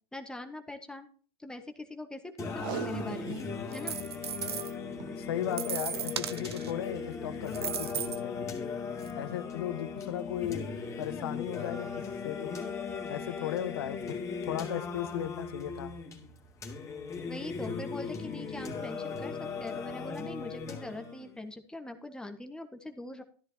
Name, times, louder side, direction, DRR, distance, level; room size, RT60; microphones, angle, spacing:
voice 1, 0.1-1.1 1.4-3.4 3.7-4.0 17.2-23.2, left 2 dB, 5° left, 1.4 m, -42 dB
Singing, 2.4-21.4, left 5 dB, 25° left, 2.6 m, -38 dB
Packing tape duct tape, 2.5-3.6 4.0-4.1 4.2-4.3 4.9-5.2 6.2-6.5 7.0-7.1, right 9 dB, 60° right, 1.6 m, -39 dB
sound 1, 3.7-4.7 5.5-6.7 7.5-8.2 9.0-9.1, right 9 dB, 85° right, 0.9 m, -36 dB
voice 2, 5.2-8.3 9.1-12.5 13.1-15.9, left 11 dB, 75° left, 1.3 m, -36 dB
13.5 x 11.5 x 2.8 m
hypercardioid pair, 100°, 13 cm